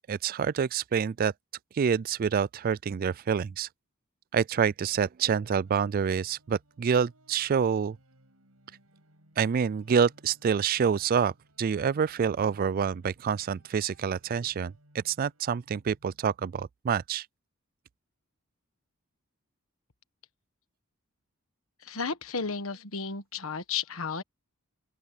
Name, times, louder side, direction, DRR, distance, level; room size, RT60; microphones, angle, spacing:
voice 1, 0.0-1.3 1.7-3.7 4.3-8.0 9.4-17.3, right 7 dB, 40° right, 0.3 m, -27 dB
sound 1, 5.6-16.3, right 1 dB, 80° right, 7.9 m, -63 dB
voice 2, 21.8-24.2, left 5 dB, 70° left, 1.4 m, -33 dB
open air
head